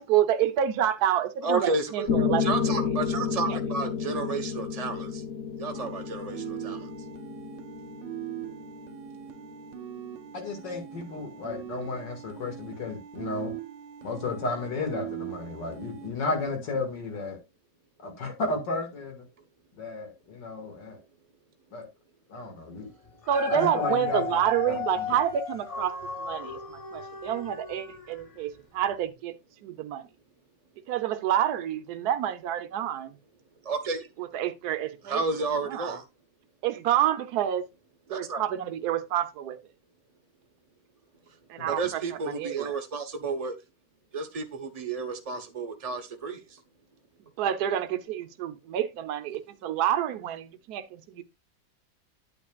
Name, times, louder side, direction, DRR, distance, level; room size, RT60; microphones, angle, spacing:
voice 1, 0.0-2.9 3.4-3.6 23.3-25.9 26.2-29.3 29.6-30.1 30.9-33.2 34.2-35.2 35.7-36.0 36.6-37.6 38.1-39.6 41.5-42.7 47.4-51.2, right 10 dB, 65° right, 1.3 m, -28 dB
voice 2, 1.4-2.1 2.4-5.2 5.6-6.9 33.6-34.1 35.0-36.0 38.1-38.4 41.7-43.5 44.1-46.6, right 3 dB, 25° right, 0.9 m, -31 dB
Piano, 2.1-10.1, left 6 dB, 50° left, 0.9 m, -31 dB
sound 1, 5.7-16.1, right 12 dB, 90° right, 1.6 m, -41 dB
voice 3, 10.3-13.5 14.0-17.4 18.0-19.2 19.7-21.0 21.7-21.9 22.3-22.9 23.5-25.0 41.6-41.7, left 3 dB, 75° left, 2.7 m, -33 dB
Dog, 23.1-28.4 28.9-29.0, left 6 dB, 25° left, 1.0 m, -35 dB
9.5 x 8.6 x 2.4 m
omnidirectional pair, 2.0 m